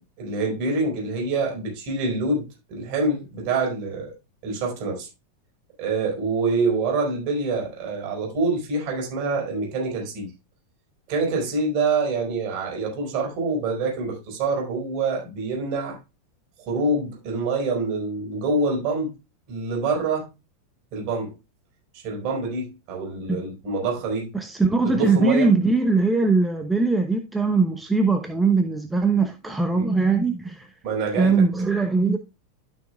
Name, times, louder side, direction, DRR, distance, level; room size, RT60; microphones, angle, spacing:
voice 1, 0.2-4.1 4.4-5.1 5.8-10.3 11.1-16.0 16.6-19.1 19.5-20.3 20.9-21.3 21.9-24.3 24.8-25.5 29.1-29.2 29.7-29.9 30.8-31.4, right 3 dB, 45° right, 4.8 m, -26 dB
voice 2, 24.3-30.7 31.2-32.2, right 4 dB, 5° right, 0.8 m, -21 dB
12.0 x 6.2 x 2.4 m
figure-of-eight pair, 90°, 0 cm